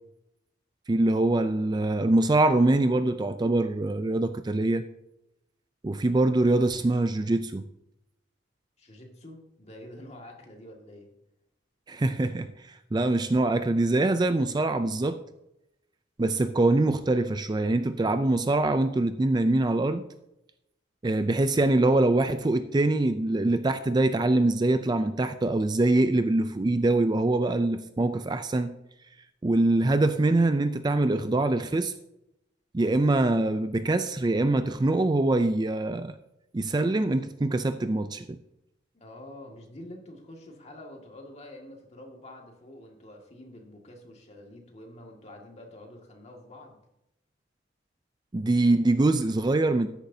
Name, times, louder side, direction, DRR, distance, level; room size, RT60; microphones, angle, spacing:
voice 1, 0.9-4.8 5.8-7.6 11.9-15.2 16.2-20.0 21.0-28.8 29.4-31.9 32.7-36.2 36.5-38.4 48.3-49.9, right 2 dB, 20° right, 0.4 m, -24 dB
voice 2, 8.8-11.1 38.9-46.8, left 1 dB, 35° left, 2.0 m, -47 dB
13.0 x 10.5 x 2.8 m
head